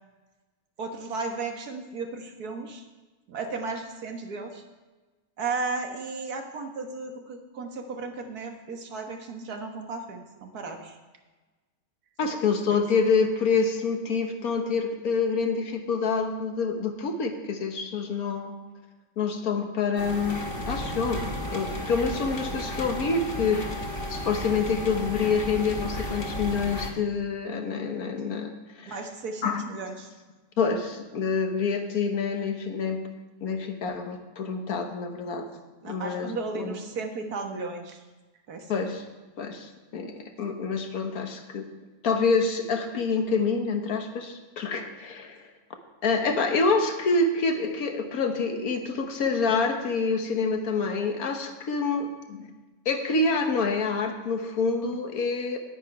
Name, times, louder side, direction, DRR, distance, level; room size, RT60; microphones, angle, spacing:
voice 1, 0.8-2.8 3.3-4.6 5.4-11.0 12.2-12.3 12.7-12.8 28.9-30.1 35.8-38.0 38.5-38.9, right 4 dB, 85° right, 4 dB, 1.8 m, -35 dB
voice 2, 12.2-18.5 19.2-20.4 20.7-23.8 24.1-28.5 28.8-29.0 29.4-29.8 30.6-33.0 33.4-35.5 35.8-36.7 38.7-39.1 39.4-41.7 42.0-45.4 46.0-52.5 52.9-55.6, left 4 dB, 75° left, 5 dB, 1.6 m, -27 dB
sound 1, 20.0-26.9, left 1 dB, 40° left, 1.3 m, -33 dB
10.0 x 9.7 x 4.8 m, 1.2 s
omnidirectional pair, 1.6 m